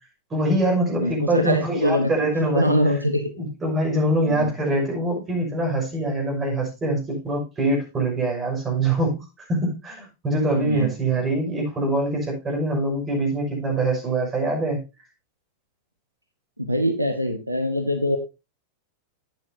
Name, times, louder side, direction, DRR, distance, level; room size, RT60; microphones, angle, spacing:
voice 1, 0.3-2.8 3.4-14.8, right 1 dB, 20° right, 0 dB, 6.0 m, -24 dB
voice 2, 1.0-2.1 2.4-3.3 4.2-4.5 10.5-10.9 16.6-18.2, equal, 85° right, 7 dB, 1.1 m, -23 dB
11.5 x 8.9 x 2.7 m, 0.26 s
figure-of-eight pair, 90°, 0 cm